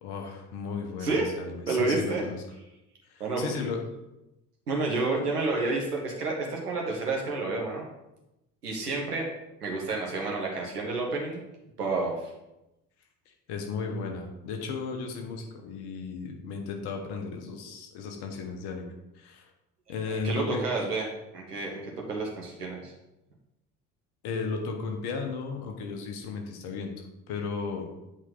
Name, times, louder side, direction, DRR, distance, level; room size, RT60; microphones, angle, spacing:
voice 1, 0.0-2.4 3.1-3.8 13.3-19.5 19.9-20.6 24.2-26.9 27.3-27.9, left 4 dB, 55° left, 3 dB, 1.4 m, -35 dB
voice 2, 1.7-2.2 3.2-3.4 4.7-7.8 8.6-9.3 9.6-11.4 11.8-12.1 20.2-21.1 21.3-22.9, right 3 dB, 85° right, -1 dB, 1.2 m, -29 dB
8.1 x 4.3 x 3.9 m, 0.94 s
figure-of-eight pair, 55°, 46 cm